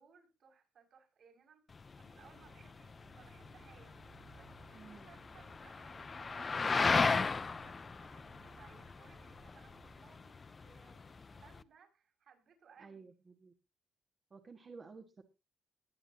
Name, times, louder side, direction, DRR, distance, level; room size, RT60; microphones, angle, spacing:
voice 1, 0.0-1.6 1.9-13.1, right 6 dB, 65° right, 1 dB, 5.7 m, -63 dB
sound 1, 1.7-11.6, left 4 dB, 35° left, 0.6 m, -36 dB
sound 2, 2.3-10.1, right 7 dB, 80° right, 8.0 m, -63 dB
voice 2, 4.7-5.1 12.8-13.5 14.3-15.2, right 4 dB, 35° right, 2 dB, 1.6 m, -53 dB
21.0 x 8.2 x 2.8 m, 0.28 s
cardioid pair, 90°, 0 cm